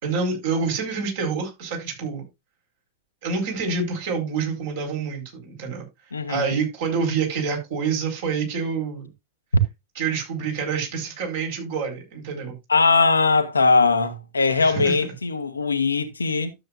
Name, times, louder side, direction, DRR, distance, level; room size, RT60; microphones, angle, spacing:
voice 1, 0.0-2.2 3.2-5.8 6.3-9.1 9.9-12.6 14.6-15.0, right 5 dB, 55° right, 4.6 m, -27 dB
voice 2, 6.1-6.6 12.7-16.5, left 4 dB, 75° left, 1.1 m, -20 dB
12.5 x 7.7 x 2.5 m
figure-of-eight pair, 90°, 0 cm